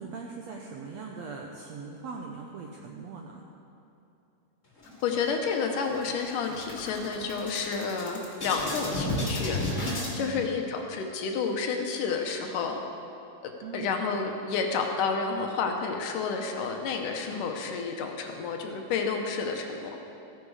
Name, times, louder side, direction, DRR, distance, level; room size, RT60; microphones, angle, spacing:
voice 1, 0.0-3.4 10.1-10.6 13.6-14.1, right 5 dB, 80° right, 0 dB, 1.5 m, -40 dB
sound 1, 4.8-5.6 5.9-6.1 6.4-10.1, left 1 dB, 25° left, 2.4 m, -33 dB
voice 2, 5.0-12.8 13.7-19.9, left 5 dB, 75° left, 3 dB, 2.4 m, -30 dB
15.0 x 11.0 x 4.9 m, 2.9 s
omnidirectional pair, 4.0 m